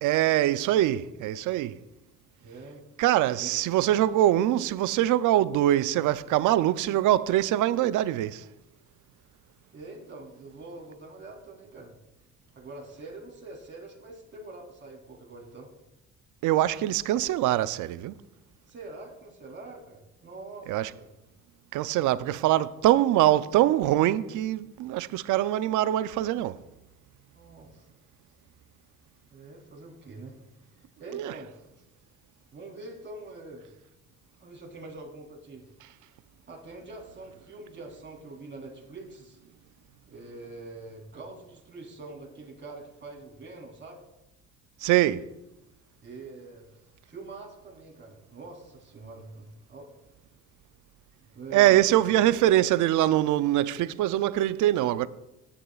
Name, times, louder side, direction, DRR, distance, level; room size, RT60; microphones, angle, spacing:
voice 1, 0.0-1.7 3.0-8.4 16.4-18.1 20.7-20.9 21.7-26.6 31.1-31.3 44.8-45.3 51.5-55.1, right 13 dB, 85° right, 0.5 m, -23 dB
voice 2, 2.4-2.8 3.3-3.5 9.7-11.9 12.5-15.7 18.7-21.1 27.3-27.9 29.3-30.4 31.0-31.5 32.5-33.7 34.4-35.6 36.5-39.4 40.1-44.1 46.0-46.8 47.0-49.9 51.3-52.4, right 3 dB, 40° right, 3.1 m, -44 dB
16.5 x 9.9 x 2.4 m
cardioid pair, 90°, 30 cm